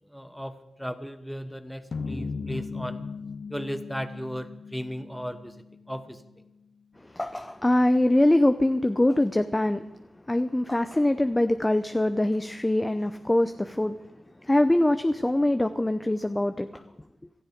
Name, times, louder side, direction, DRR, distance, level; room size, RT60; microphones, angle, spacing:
voice 1, 0.1-3.0 3.5-5.5 5.9-6.2, equal, ahead, 10 dB, 1.2 m, -35 dB
sound 1, 1.9-6.3, left 4 dB, 60° left, 1.0 m, -37 dB
voice 2, 7.1-9.9 10.3-14.0 14.4-16.8, left 1 dB, 20° left, 10 dB, 0.7 m, -23 dB
17.5 x 12.5 x 5.2 m, 0.92 s
supercardioid pair, 40°, 0 cm